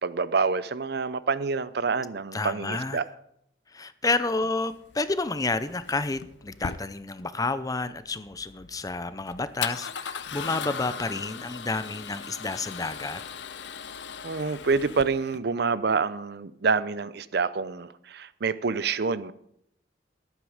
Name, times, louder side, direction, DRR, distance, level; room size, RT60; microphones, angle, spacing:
voice 1, 0.0-3.0 14.2-19.3, right 4 dB, 65° right, 16 dB, 0.6 m, -27 dB
voice 2, 2.3-3.0 3.7-13.2, left 3 dB, 20° left, 14 dB, 0.6 m, -30 dB
Male speech man speaking / Car / Engine starting, 4.3-15.4, left 7 dB, 80° left, 0.7 m, -39 dB
13.5 x 11.0 x 5.0 m, 0.73 s
head